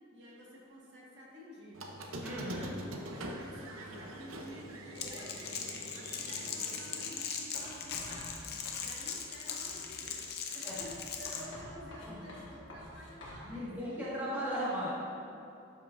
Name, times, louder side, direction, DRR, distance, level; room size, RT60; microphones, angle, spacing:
voice 1, 0.1-1.8 2.5-2.7 3.0-5.6 5.9-10.2 10.5-14.5, equal, 55° right, -5 dB, 1.7 m, -51 dB
Squeak, 1.7-7.1, right 1 dB, 90° right, 0.7 m, -44 dB
voice 2, 2.2-2.7 10.6-10.8 13.4-14.9, equal, 10° right, -10 dB, 1.6 m, -36 dB
Crackle, 5.0-11.5, left 6 dB, 50° left, 0.6 m, -40 dB
Writing, 7.5-9.2 9.5-10.0 10.7-13.5, left 1 dB, 65° left, 1.5 m, -48 dB
12.0 x 5.3 x 2.5 m, 2.7 s
head